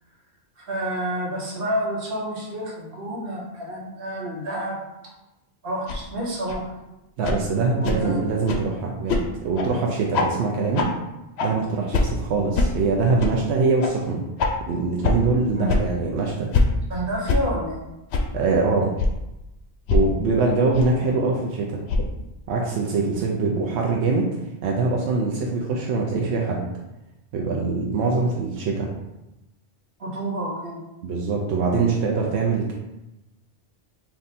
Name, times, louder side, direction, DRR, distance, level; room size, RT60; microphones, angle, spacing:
voice 1, 0.6-4.8 5.6-6.7 7.8-8.2 15.5-15.7 16.9-17.8 30.0-30.8, right 1 dB, 60° right, -3 dB, 1.1 m, -29 dB
sound 1, 5.9-6.0 6.5-6.6 7.2-7.4 7.8-8.0 8.5-8.6 9.1-9.2 9.5-9.7 10.1-10.3 10.7-10.9 11.4-11.5 11.9-12.1 12.5-12.7 13.2-13.3 13.8-13.9 14.4-14.5 15.0-15.1 15.7-15.8 16.5-16.7 17.3-17.4 18.1-18.2 19.0-19.1 19.9-20.0 20.7-20.8 21.9-22.1, left 3 dB, 80° left, 0.8 m, -21 dB
voice 2, 7.2-10.9 11.4-14.2 14.7-16.5 18.3-18.9 19.9-21.8 22.5-24.4 24.6-26.7 27.3-28.9 31.0-32.7, right 4 dB, 85° right, -1 dB, 0.9 m, -23 dB
3.4 x 2.7 x 4.0 m, 0.96 s
omnidirectional pair, 1.1 m